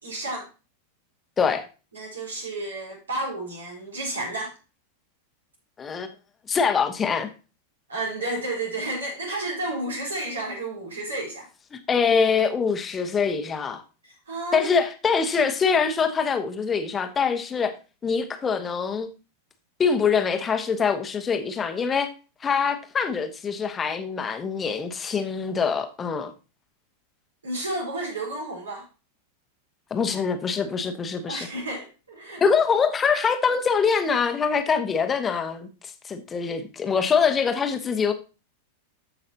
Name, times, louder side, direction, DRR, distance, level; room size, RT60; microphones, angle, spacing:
voice 1, 0.0-0.5 1.9-4.5 7.9-11.5 14.0-14.7 27.4-28.9 31.3-32.4, right 2 dB, 70° right, 4.1 m, -31 dB
voice 2, 5.8-6.1 6.5-7.3 11.9-13.8 14.5-17.7 18.0-19.1 19.8-22.1 22.4-26.3 29.9-31.5 32.4-38.1, left 6 dB, 20° left, 1.3 m, -24 dB
14.0 x 5.7 x 2.8 m
figure-of-eight pair, 90°, 0 cm